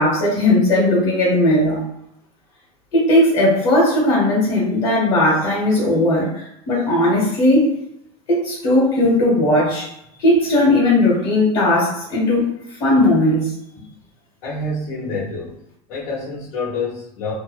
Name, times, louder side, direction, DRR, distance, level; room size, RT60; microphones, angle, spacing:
voice 1, 0.0-1.8 2.9-7.7 8.3-9.9 10.2-12.5 12.8-13.5, left 1 dB, 45° left, -5 dB, 1.1 m, -17 dB
voice 2, 14.4-15.5 15.9-17.3, left 3 dB, 85° left, -8 dB, 0.9 m, -27 dB
2.7 x 2.1 x 2.2 m, 0.77 s
supercardioid pair, 160°, 18 cm